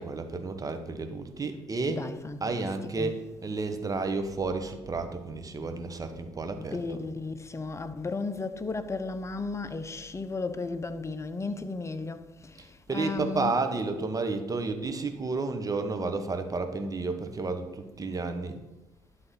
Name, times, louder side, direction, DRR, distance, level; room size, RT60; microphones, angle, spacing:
voice 1, 0.0-2.1 2.4-7.0 12.6-18.6, right 3 dB, 30° right, 1.3 m, -31 dB
voice 2, 1.9-3.3 5.6-5.8 6.6-13.8, left 3 dB, 25° left, 0.9 m, -35 dB
11.0 x 3.9 x 5.9 m
hypercardioid pair, 55°, 12 cm